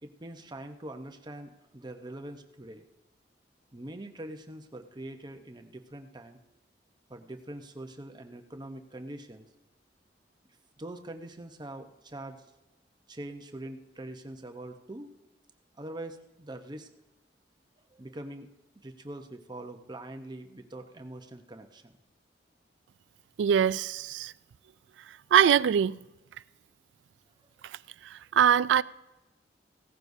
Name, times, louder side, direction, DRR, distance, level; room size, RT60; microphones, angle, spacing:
voice 1, 0.0-2.8 3.7-6.4 7.1-9.5 10.8-12.4 13.1-15.1 15.8-16.9 17.9-18.5 18.8-22.0, right 1 dB, 25° right, 0.8 m, -43 dB
voice 2, 23.4-24.3 25.3-26.0 27.6-27.8 28.0-28.8, right 8 dB, 85° right, 0.3 m, -23 dB
16.5 x 14.0 x 2.7 m
head